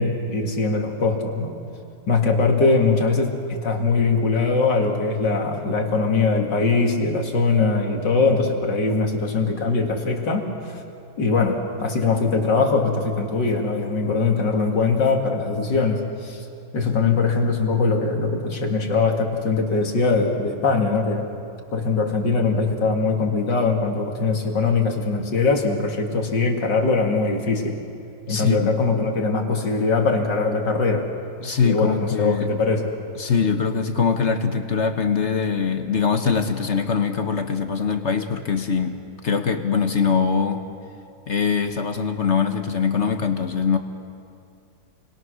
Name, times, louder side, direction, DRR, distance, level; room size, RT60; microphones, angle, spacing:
voice 1, 0.0-1.5 2.1-10.8 11.2-16.5 16.7-21.3 21.7-27.7 28.3-31.1 31.6-32.9, left 4 dB, 65° left, 2 dB, 2.8 m, -21 dB
voice 2, 28.3-28.8 31.4-32.5 33.2-39.0 39.2-40.7 41.3-43.8, left 6 dB, 45° left, 7 dB, 1.2 m, -22 dB
29.0 x 21.5 x 6.4 m, 2.5 s
omnidirectional pair, 2.1 m